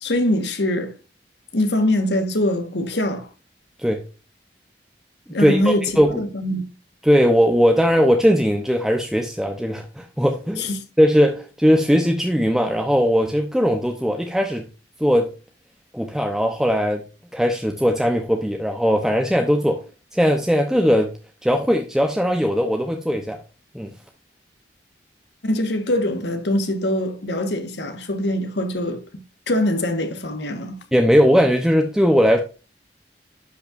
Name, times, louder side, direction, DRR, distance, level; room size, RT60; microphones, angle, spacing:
voice 1, 0.0-0.9 1.5-3.3 5.3-6.7 10.6-10.8 25.4-29.0 29.5-30.8, left 1 dB, 75° left, 1.5 m, -23 dB
voice 2, 5.4-6.1 7.0-10.7 11.0-14.7 15.0-15.3 15.9-17.0 17.3-19.8 20.1-21.1 21.4-23.4 23.7-23.9 30.9-32.4, equal, 5° right, 0.8 m, -19 dB
12.0 x 5.6 x 2.6 m
head